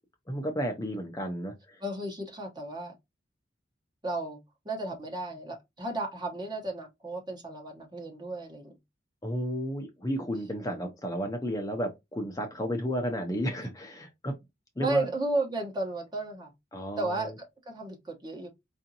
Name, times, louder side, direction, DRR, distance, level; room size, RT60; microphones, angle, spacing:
voice 1, 0.3-1.8 9.2-14.3 14.8-15.1 16.7-17.3, equal, 20° left, 0.7 m, -32 dB
voice 2, 1.8-2.9 4.0-4.4 4.6-8.7 10.6-10.8 14.8-16.5 17.0-18.5, right 2 dB, 25° right, 1.1 m, -33 dB
4.9 x 2.6 x 2.8 m
head